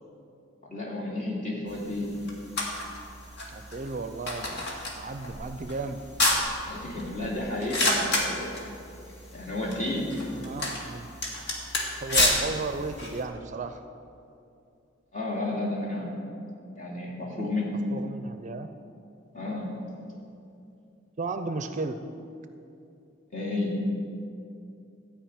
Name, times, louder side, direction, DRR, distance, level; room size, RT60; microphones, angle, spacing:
voice 1, 0.7-2.1 6.6-8.5 9.3-10.1 15.1-16.3 16.7-17.8 19.3-19.9 23.3-23.8, left 2 dB, 40° left, -5 dB, 2.8 m, -32 dB
sound 1, 1.7-13.2, left 1 dB, 60° left, 2.0 m, -31 dB
voice 2, 3.5-6.0 10.3-11.1 12.0-13.8 17.9-18.7 21.2-22.0, right 3 dB, 40° right, 8 dB, 0.5 m, -34 dB
13.5 x 5.0 x 8.8 m, 2.6 s
head